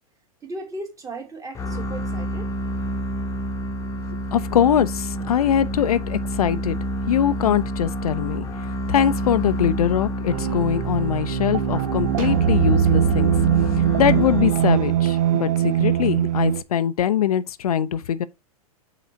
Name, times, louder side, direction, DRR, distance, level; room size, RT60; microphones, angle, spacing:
voice 1, 0.4-2.5, right 2 dB, 15° right, 1.8 m, -36 dB
sound 1, 1.5-15.0, equal, 15° left, 1.0 m, -28 dB
voice 2, 4.3-6.8 7.1-8.5 8.9-13.3 13.7-18.2, left 9 dB, 75° left, 0.5 m, -22 dB
sound 2, 10.3-16.6, right 10 dB, 60° right, 0.6 m, -21 dB
5.7 x 4.0 x 4.4 m
hypercardioid pair, 105°, 19 cm